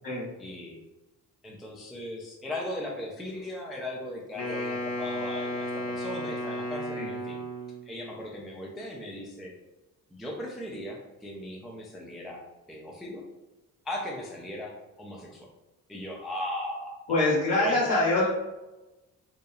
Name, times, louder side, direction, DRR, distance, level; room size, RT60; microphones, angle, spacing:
voice 1, 0.4-0.8 1.4-7.4 7.9-9.5 10.1-12.4 12.7-13.2 13.9-15.5 15.9-17.8, left 1 dB, ahead, -1 dB, 0.3 m, -38 dB
Wind instrument woodwind instrument, 4.3-7.8, equal, 35° left, 0.7 m, -33 dB
voice 2, 17.1-18.3, left 2 dB, 65° left, -6 dB, 1.3 m, -24 dB
2.8 x 2.2 x 2.2 m, 1.0 s
figure-of-eight pair, 40°, 46 cm